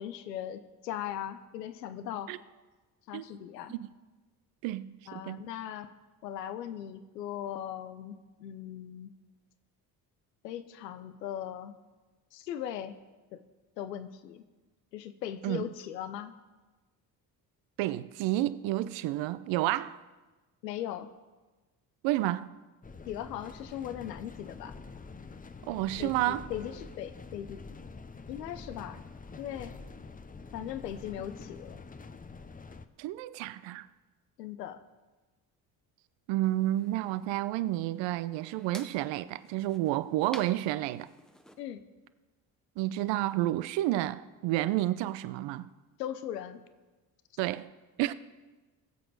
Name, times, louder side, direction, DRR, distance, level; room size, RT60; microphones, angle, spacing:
voice 1, 0.0-2.3 3.1-3.8 5.1-5.9 6.2-9.1 10.4-11.8 12.3-13.0 13.3-13.4 13.8-14.4 14.9-16.3 20.6-21.1 23.1-24.8 26.0-27.6 28.3-29.0 29.4-29.8 30.5-31.8 34.4-34.8 41.6-41.8 46.0-46.6, left 10 dB, 90° left, 0.7 m, -39 dB
voice 2, 4.6-5.4 15.4-15.6 17.8-20.0 22.0-22.5 25.7-26.5 33.0-33.9 36.3-41.1 42.8-45.7 47.4-47.7 48.0-48.1, right 15 dB, 65° right, 0.7 m, -30 dB
sound 1, 22.8-32.9, left 4 dB, 15° left, 0.8 m, -46 dB
sound 2, 36.4-41.6, equal, ahead, 1.2 m, -53 dB
19.5 x 7.9 x 4.8 m
hypercardioid pair, 50°, 48 cm